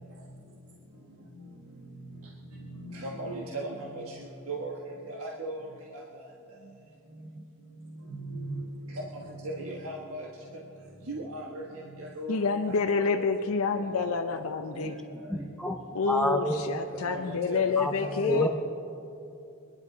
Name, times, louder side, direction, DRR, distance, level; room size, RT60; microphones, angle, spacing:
voice 1, 5.2-5.6 9.8-10.2 11.1-11.4 12.2-12.3 17.1-17.2 17.5-17.6 18.3-18.4, right 2 dB, 90° right, -2 dB, 1.3 m, -35 dB
voice 2, 12.3-15.0 15.9-18.5, left 4 dB, 80° left, 5 dB, 0.6 m, -28 dB
voice 3, 14.7-15.8 16.1-17.0 17.8-18.5, equal, 5° left, 5 dB, 0.6 m, -30 dB
24.5 x 11.0 x 4.0 m, 2.8 s
head